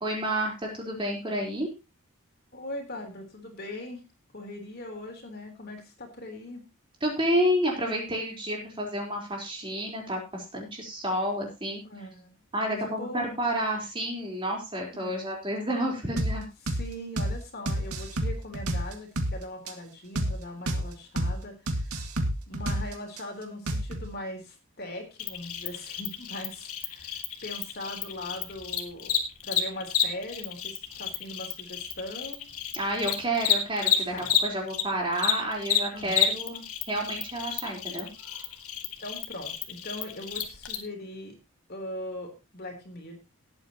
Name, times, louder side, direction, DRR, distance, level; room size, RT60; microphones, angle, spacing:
voice 1, 0.0-1.7 7.0-11.8 12.5-16.5 32.7-34.1 34.4-38.1, equal, 25° right, -1 dB, 4.1 m, -30 dB
voice 2, 2.5-4.0 4.3-6.6 11.8-12.3 12.7-13.4 14.9-15.3 16.7-21.9 22.5-29.2 29.4-32.4 34.1-34.3 35.9-36.3 39.0-41.4 41.7-43.2, left 1 dB, 45° left, 3 dB, 3.7 m, -40 dB
sound 1, 16.2-16.4 16.7-16.9 17.2-17.4 17.7-19.4 19.7-19.8 20.2-20.4 20.7-20.9 21.2-21.4 21.7-23.2 23.7-24.1, right 1 dB, 85° right, 2.2 m, -29 dB
Cricket, 25.2-34.8 35.1-40.7, left 10 dB, 85° left, 2.2 m, -30 dB
18.5 x 8.9 x 3.0 m, 0.27 s
head